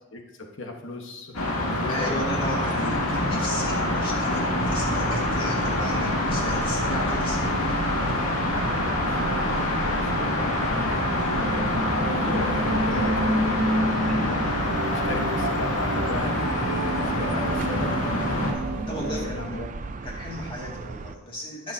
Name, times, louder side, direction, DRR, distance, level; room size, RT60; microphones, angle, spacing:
voice 1, 0.1-2.2 8.8-18.0 19.0-19.7, left 1 dB, 60° left, 2 dB, 1.3 m, -37 dB
sound 1, 1.3-18.5, left 1 dB, 80° left, 2.1 m, -26 dB
voice 2, 1.9-7.5 17.2-17.5 18.8-19.6 20.0-21.7, left 1 dB, 25° left, -3 dB, 2.3 m, -34 dB
sound 2, 2.2-21.2, right 3 dB, 35° right, 0.4 m, -36 dB
sound 3, 11.3-19.3, right 1 dB, 55° right, 1.6 m, -30 dB
19.0 x 6.6 x 2.8 m, 1.1 s
head